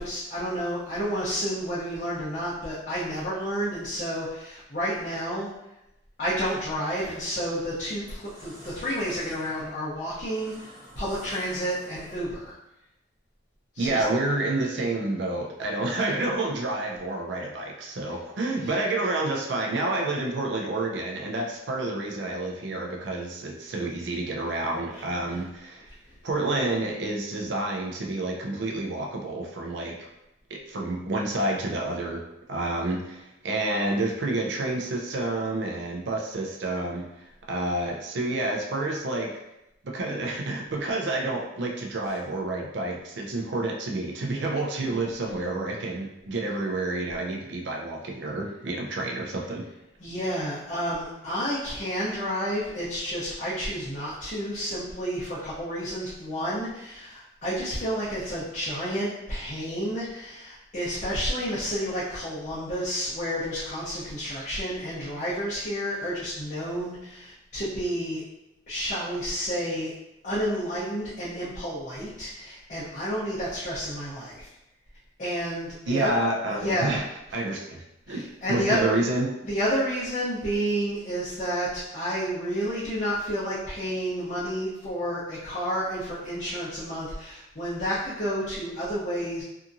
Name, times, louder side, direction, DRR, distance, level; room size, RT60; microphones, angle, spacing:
voice 1, 0.0-5.5 6.2-10.5 11.0-12.5 13.7-14.0 50.0-68.2 68.7-69.9 70.2-74.5 75.2-76.1 76.5-77.0 78.1-78.8 79.4-89.4, equal, 40° left, -11 dB, 0.7 m, -30 dB
sound 1, 8.0-12.5, equal, 20° right, 1.0 m, -48 dB
voice 2, 13.8-25.9 26.2-30.1 30.5-32.2 32.5-39.4 39.8-49.6 75.9-77.0 77.3-79.3, right 2 dB, 70° right, 0 dB, 0.4 m, -29 dB
2.8 x 2.4 x 2.5 m, 0.90 s
head